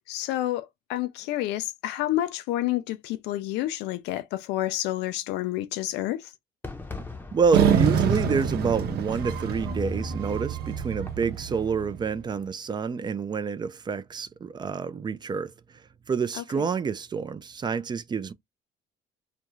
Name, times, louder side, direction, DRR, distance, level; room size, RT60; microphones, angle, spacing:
voice 1, 0.1-6.3 16.3-16.4, left 14 dB, 90° left, 0.4 m, -29 dB
Fireworks, 6.6-11.7, left 3 dB, 10° left, 0.7 m, -44 dB
voice 2, 7.3-15.5 16.1-18.3, right 5 dB, 25° right, 0.4 m, -28 dB
sound 1, 7.5-12.1, right 7 dB, 70° right, 0.8 m, -26 dB
2.4 x 2.3 x 2.9 m
cardioid pair, 110°, 17 cm